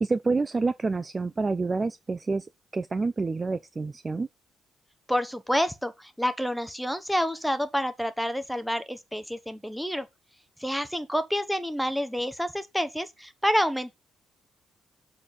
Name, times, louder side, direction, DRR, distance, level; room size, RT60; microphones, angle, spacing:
voice 1, 0.0-2.5 2.7-4.3, right 3 dB, 30° right, 0.5 m, -28 dB
voice 2, 5.1-10.1 10.6-13.9, equal, ahead, 1.2 m, -28 dB
7.0 x 4.2 x 5.4 m
cardioid pair, 90°, 0 cm